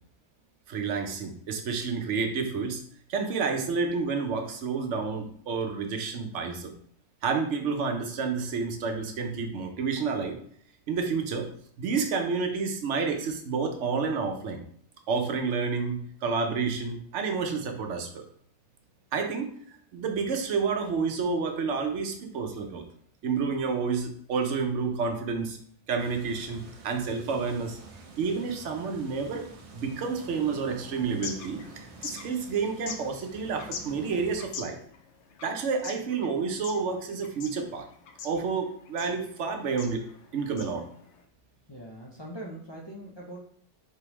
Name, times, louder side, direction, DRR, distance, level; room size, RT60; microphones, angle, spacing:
voice 1, 0.7-2.8 3.1-6.7 7.2-10.4 10.9-11.5 11.8-14.6 15.1-18.3 19.1-19.5 19.9-22.9 23.2-25.6 25.9-27.8 28.2-29.5 29.7-34.8 35.4-37.9 38.2-40.0 40.3-40.9, right 5 dB, 85° right, 4 dB, 1.0 m, -29 dB
sound 1, 26.0-34.5, right 4 dB, 45° right, 0.5 m, -48 dB
sound 2, 31.0-41.2, left 6 dB, 75° left, 0.9 m, -44 dB
voice 2, 41.7-43.4, right 1 dB, 30° left, -3 dB, 0.5 m, -42 dB
4.1 x 3.4 x 2.9 m, 0.62 s
omnidirectional pair, 1.2 m